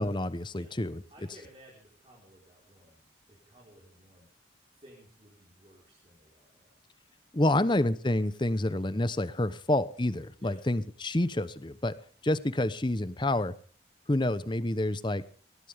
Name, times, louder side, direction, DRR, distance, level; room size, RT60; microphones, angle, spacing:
voice 1, 0.0-1.0 7.3-12.0 12.2-13.6 14.1-15.2, left 1 dB, 25° left, 15 dB, 0.8 m, -28 dB
voice 2, 1.1-3.0 3.3-4.3 4.7-6.7 10.4-10.6, equal, 30° right, -4 dB, 4.7 m, -56 dB
21.5 x 18.0 x 3.6 m, 0.41 s
head